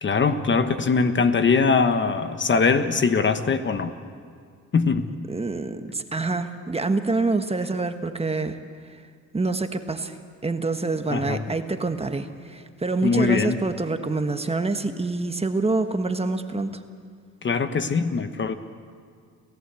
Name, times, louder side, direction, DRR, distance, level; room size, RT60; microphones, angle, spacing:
voice 1, 0.0-3.9 4.7-5.1 11.1-11.4 13.0-13.6 17.4-18.5, left 5 dB, 40° left, 9 dB, 1.2 m, -22 dB
voice 2, 5.3-8.6 8.8-9.0 9.3-10.2 10.4-16.8, right 3 dB, 20° right, 7 dB, 1.3 m, -26 dB
29.5 x 15.0 x 8.3 m, 2.1 s
cardioid pair, 90°, 30 cm